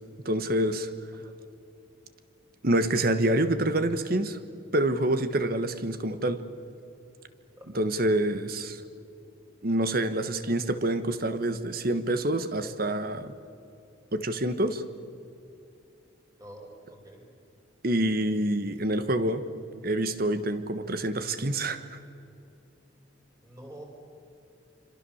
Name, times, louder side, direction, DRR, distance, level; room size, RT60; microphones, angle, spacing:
voice 1, 0.2-0.9 2.6-4.4 4.7-6.4 7.7-8.8 9.6-13.3 14.1-14.8 17.8-19.4 19.8-22.0, right 1 dB, 50° right, 11 dB, 1.3 m, -27 dB
voice 2, 16.4-17.2 23.4-23.8, right 1 dB, 15° right, 0 dB, 5.1 m, -47 dB
27.0 x 25.5 x 7.2 m, 2.7 s
head